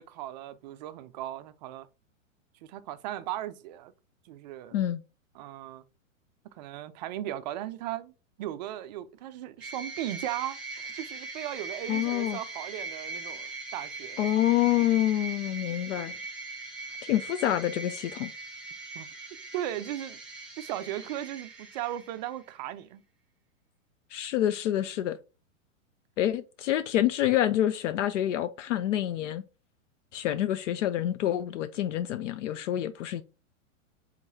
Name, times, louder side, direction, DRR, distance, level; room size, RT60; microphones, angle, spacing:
voice 1, 0.0-1.9 2.6-3.9 4.2-4.8 5.3-5.8 6.4-8.1 8.4-14.2 18.9-19.1 19.5-20.2 20.6-23.0, right 13 dB, 35° right, 0.4 m, -37 dB
sound 1, 9.6-22.4, right 3 dB, ahead, 1.1 m, -41 dB
voice 2, 11.9-12.4 14.2-16.1 17.0-18.3 24.1-25.2 26.2-29.4 30.1-33.2, left 12 dB, 65° left, 0.5 m, -27 dB
4.6 x 3.9 x 2.7 m
hypercardioid pair, 125°, 40 cm